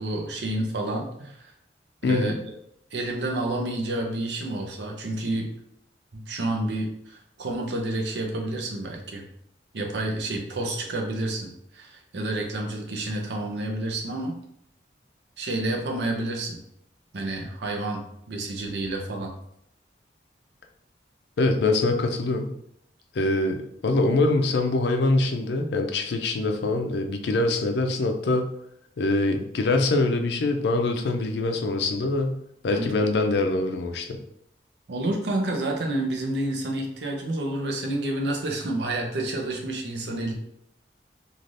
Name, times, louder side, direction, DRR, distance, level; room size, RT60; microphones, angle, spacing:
voice 1, 0.0-1.5 2.0-2.3 2.9-5.5 6.1-9.3 9.7-14.4 15.4-16.6 17.1-19.3 32.7-32.9 34.9-40.3, right 1 dB, 75° right, 1 dB, 0.6 m, -29 dB
voice 2, 2.0-2.4 21.4-22.6 23.1-28.5 29.0-34.2, left 2 dB, 70° left, 4 dB, 0.4 m, -24 dB
3.2 x 2.4 x 2.6 m, 0.74 s
head